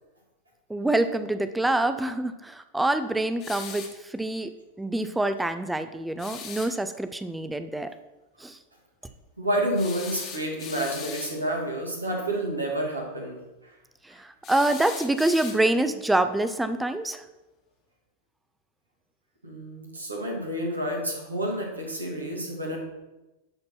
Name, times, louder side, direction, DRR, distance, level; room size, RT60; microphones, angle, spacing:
voice 1, 0.7-4.5 4.8-7.9 8.4-8.6 14.1-17.2, right 1 dB, 5° right, 10 dB, 0.7 m, -26 dB
sound 1, 3.4-4.0 6.2-6.7 9.8-11.4 14.4-15.9, left 6 dB, 35° left, 1.6 m, -40 dB
voice 2, 9.4-13.7 19.4-22.8, right 1 dB, 80° right, 0 dB, 2.2 m, -29 dB
11.5 x 4.4 x 5.9 m, 1.0 s
figure-of-eight pair, 90°, 0 cm